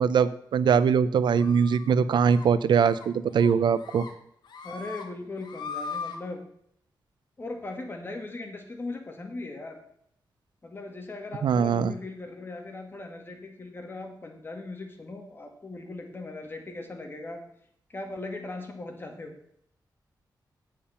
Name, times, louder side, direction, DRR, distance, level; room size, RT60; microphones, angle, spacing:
voice 1, 0.0-4.0 11.4-11.9, right 6 dB, 80° right, 15 dB, 0.6 m, -22 dB
sound 1, 1.3-1.9 2.3-2.5 2.8-3.1 3.4-4.1 4.4-5.0 5.4-6.2, left 5 dB, 75° left, 1.6 m, -39 dB
voice 2, 4.6-6.4 7.4-9.8 10.6-17.4 17.9-19.3, left 2 dB, 30° left, 3 dB, 1.9 m, -39 dB
8.6 x 7.5 x 5.7 m, 0.70 s
wide cardioid pair, 125°, 8 cm